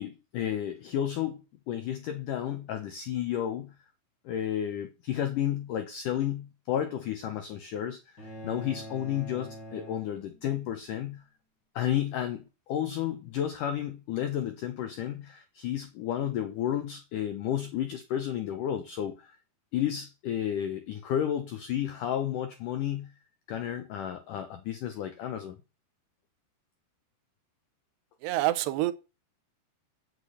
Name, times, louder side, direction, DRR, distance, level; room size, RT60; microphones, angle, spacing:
voice 1, 0.0-1.4 1.7-3.7 4.3-11.2 11.8-19.4 19.7-23.1 23.5-25.6, left 10 dB, 80° left, 1.8 m, -32 dB
sound 1, 8.2-10.7, right 1 dB, 25° left, 4.1 m, -44 dB
voice 2, 28.2-28.9, right 16 dB, 80° right, 2.6 m, -26 dB
8.4 x 6.9 x 8.1 m
omnidirectional pair, 5.1 m